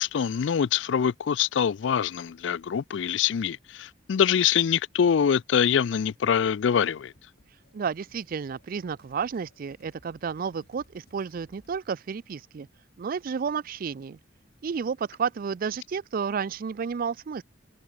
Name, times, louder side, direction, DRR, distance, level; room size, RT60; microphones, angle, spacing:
voice 1, 0.0-7.1, left 8 dB, 75° left, 0.4 m, -24 dB
sound 1, 7.3-11.8, left 1 dB, 55° left, 2.9 m, -62 dB
voice 2, 7.5-12.7 13.0-14.2 14.6-17.4, right 6 dB, 50° right, 0.4 m, -31 dB
head